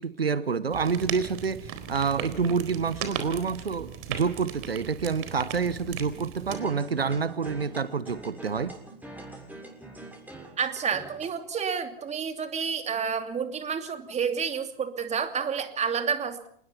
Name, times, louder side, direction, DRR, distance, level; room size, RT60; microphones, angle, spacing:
voice 1, 0.0-8.7, right 5 dB, 85° right, 0.9 m, -28 dB
sound 1, 0.7-6.6, right 9 dB, 45° right, 4.2 m, -37 dB
sound 2, 6.4-11.3, right 1 dB, 5° right, 7.1 m, -44 dB
voice 2, 10.6-16.5, right 6 dB, 25° right, 2.9 m, -29 dB
28.0 x 20.0 x 5.8 m
figure-of-eight pair, 90°, 29 cm